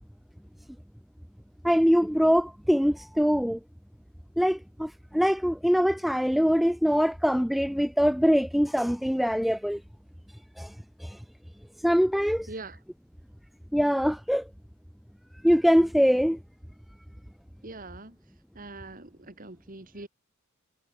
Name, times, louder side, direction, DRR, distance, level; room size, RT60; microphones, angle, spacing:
voice 1, 1.6-3.6 4.4-9.8 10.6-10.7 11.0-11.2 11.8-12.5 13.7-14.5 15.4-16.4, equal, ahead, 0.5 m, -23 dB
voice 2, 12.5-12.8 17.6-18.2 18.5-20.1, right 2 dB, 40° right, 2.5 m, -42 dB
head